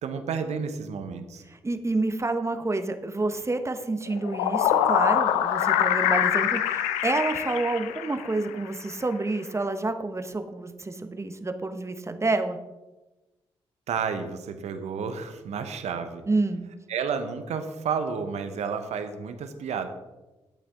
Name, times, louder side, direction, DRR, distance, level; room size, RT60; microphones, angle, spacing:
voice 1, 0.0-1.4 13.9-16.2 16.9-19.9, right 6 dB, 70° right, 8 dB, 1.0 m, -31 dB
voice 2, 1.5-12.6 16.3-16.6, right 2 dB, 25° right, 7 dB, 1.1 m, -28 dB
sound 1, 4.1-8.5, left 10 dB, 85° left, 0.6 m, -24 dB
10.5 x 8.6 x 3.7 m, 1.1 s
hypercardioid pair, 40°, 12 cm